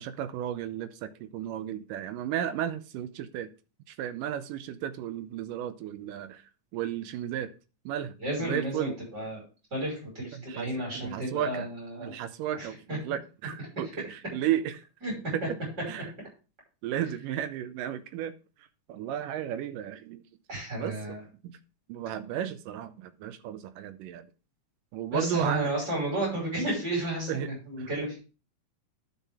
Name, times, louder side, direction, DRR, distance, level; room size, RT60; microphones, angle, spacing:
voice 1, 0.0-3.5 3.9-6.4 6.7-7.5 7.9-9.0 10.3-11.7 12.0-14.8 15.3-15.6 15.9-16.1 16.8-18.3 18.9-20.2 20.5-21.2 21.4-21.6 21.9-24.3 24.9-25.7 27.3-27.5 27.8-27.9, right 11 dB, 90° right, 2.4 m, -34 dB
voice 2, 8.2-9.4 9.7-11.7 11.9-12.2 12.6-13.0 15.0-15.1 20.5-21.2 25.1-28.2, right 1 dB, 30° right, 6.1 m, -32 dB
12.0 x 5.8 x 3.5 m
omnidirectional pair, 3.7 m